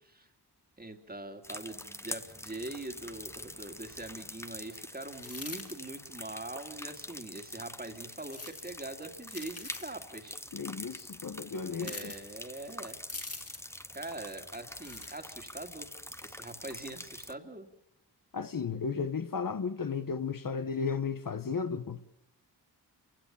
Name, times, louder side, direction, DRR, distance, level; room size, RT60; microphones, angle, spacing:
voice 1, 0.8-10.4 11.8-13.0 13.9-17.7, right 2 dB, 25° right, 2.3 m, -43 dB
sound 1, 1.4-17.3, left 1 dB, 5° left, 0.9 m, -45 dB
sound 2, 5.2-5.7 8.2-8.7 9.3-9.9 11.8-12.2 13.1-13.7 14.7-15.1, left 3 dB, 35° left, 2.5 m, -43 dB
voice 2, 10.5-12.1 18.3-22.0, left 5 dB, 55° left, 1.0 m, -34 dB
28.5 x 16.5 x 7.2 m
wide cardioid pair, 100°, 40 cm